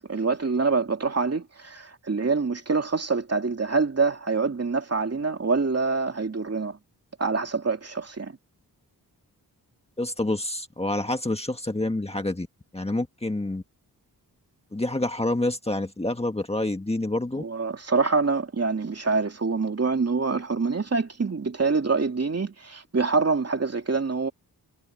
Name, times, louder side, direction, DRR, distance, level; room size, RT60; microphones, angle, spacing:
voice 1, 0.0-6.8 7.2-8.4 17.4-24.3, right 4 dB, 40° right, 2.9 m, -25 dB
voice 2, 10.0-12.5 12.7-13.6 14.7-17.4, left 2 dB, 15° left, 1.7 m, -27 dB
wide cardioid pair, 140°, 38 cm